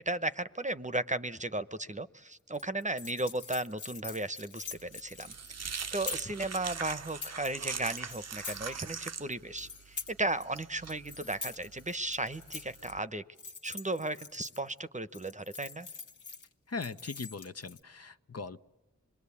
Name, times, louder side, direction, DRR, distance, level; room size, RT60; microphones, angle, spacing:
voice 1, 0.1-5.3 5.6-13.2 13.6-15.9, right 2 dB, 25° right, 12 dB, 0.9 m, -35 dB
sound 1, 2.5-6.4 6.9-7.6 7.9-8.8 9.1-10.6 10.8-12.9 13.4-14.8 15.1-16.5 16.8-17.8, left 5 dB, 75° left, 1.5 m, -45 dB
sound 2, 4.7-13.0, right 5 dB, 55° right, 0.8 m, -42 dB
voice 2, 16.7-18.6, left 4 dB, 55° left, 9 dB, 0.9 m, -40 dB
26.0 x 21.0 x 8.5 m, 1.1 s
cardioid pair, 45°, 30 cm